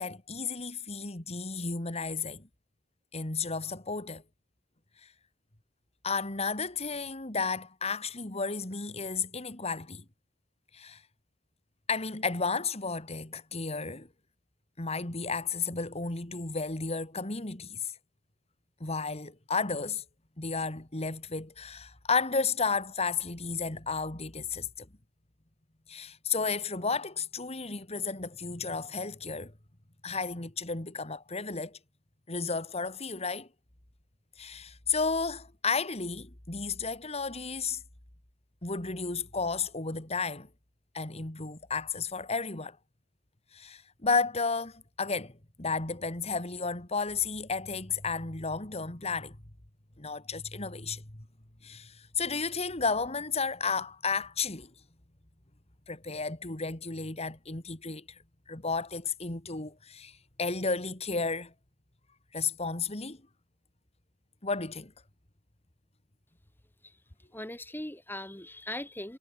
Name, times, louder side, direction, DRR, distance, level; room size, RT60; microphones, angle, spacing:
voice 1, 0.0-2.5 3.1-4.2 5.0-5.1 6.0-10.0 10.7-11.0 11.9-14.1 14.8-17.9 18.8-20.0 20.4-24.9 25.9-29.5 30.0-31.8 32.3-33.5 34.4-37.8 38.6-40.5 40.9-42.8 43.5-45.3 45.6-49.4 50.0-51.2 51.6-54.7 55.9-58.2 58.5-61.5 62.3-63.2 64.4-64.9, left 4 dB, 35° left, 2.3 m, -33 dB
voice 2, 67.3-69.2, left 1 dB, 10° left, 2.5 m, -40 dB
head